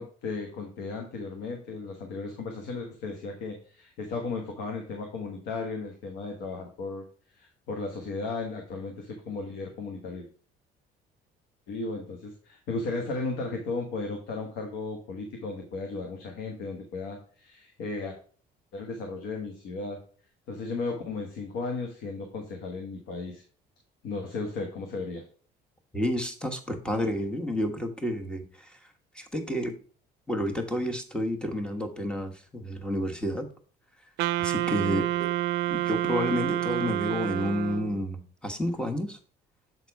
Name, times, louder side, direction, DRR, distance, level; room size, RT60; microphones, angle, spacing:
voice 1, 0.0-7.0 7.3-10.3 11.7-18.1 18.7-20.0 20.5-23.4 24.0-25.2 34.8-35.0, left 3 dB, 90° left, 3 dB, 1.3 m, -35 dB
voice 2, 25.9-28.8 29.1-29.7 30.3-33.5 34.4-35.3 35.7-39.2, left 1 dB, 5° left, 5 dB, 1.2 m, -30 dB
Wind instrument woodwind instrument, 34.2-38.0, right 13 dB, 85° right, 0.4 m, -28 dB
7.5 x 4.1 x 4.7 m, 0.42 s
cardioid pair, 110°, 17 cm